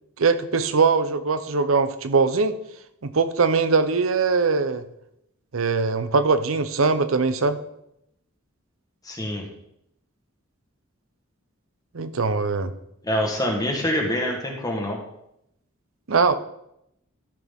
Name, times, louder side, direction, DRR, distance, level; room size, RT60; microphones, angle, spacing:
voice 1, 0.2-2.6 3.0-4.8 5.5-7.6 11.9-12.7 16.1-16.3, right 4 dB, 80° right, 12 dB, 0.7 m, -21 dB
voice 2, 9.0-9.4 13.0-15.0, left 1 dB, 20° left, 1 dB, 1.4 m, -25 dB
13.5 x 6.1 x 3.6 m, 0.79 s
head